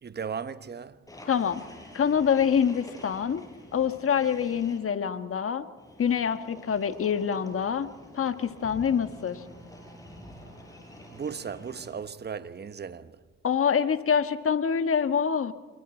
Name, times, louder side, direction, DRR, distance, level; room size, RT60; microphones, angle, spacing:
voice 1, 0.0-1.0 11.1-13.2, right 6 dB, 35° right, 1.1 m, -36 dB
sound 1, 1.1-4.8 5.8-12.2, equal, 10° left, 6.3 m, -48 dB
voice 2, 1.3-1.6 1.9-3.4 3.7-5.6 6.0-7.9 8.1-9.4 13.4-15.5, left 7 dB, 45° left, 1.4 m, -25 dB
27.5 x 22.5 x 4.4 m
cardioid pair, 90°, 30 cm